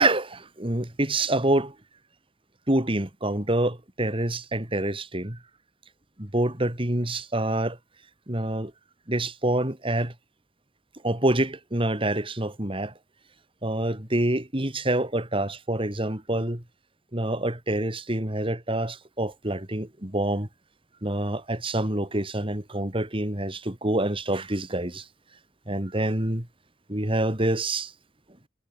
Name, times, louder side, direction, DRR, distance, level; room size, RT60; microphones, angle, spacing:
voice 1, 0.0-1.7 2.7-5.4 6.2-7.8 8.3-8.7 9.1-10.1 11.0-12.9 13.6-16.6 17.1-20.5 21.0-25.1 25.7-26.5 26.9-27.9, right 1 dB, 30° right, 2.8 m, -26 dB
head